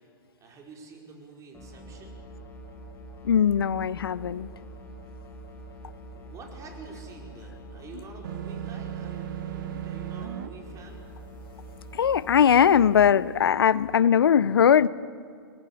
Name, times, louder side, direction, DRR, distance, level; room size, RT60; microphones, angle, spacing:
voice 1, 0.4-2.2 6.1-11.1, right 4 dB, 25° right, 1 dB, 4.9 m, -47 dB
sound 1, 1.5-13.1, right 1 dB, 20° left, 4.4 m, -45 dB
voice 2, 3.2-4.5 11.9-14.9, left 8 dB, 75° left, 20 dB, 0.6 m, -20 dB
sound 2, 8.2-10.5, right 11 dB, 60° right, 1.1 m, -35 dB
22.0 x 20.5 x 8.5 m, 2.2 s
hypercardioid pair, 110°, 12 cm